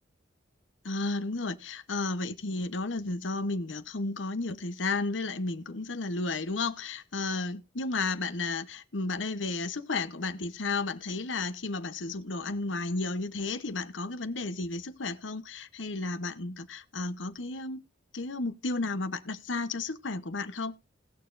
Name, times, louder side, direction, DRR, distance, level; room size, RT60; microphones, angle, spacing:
voice 1, 0.8-17.8 18.1-20.8, left 3 dB, 90° left, 1.0 m, -33 dB
19.0 x 6.6 x 2.6 m
head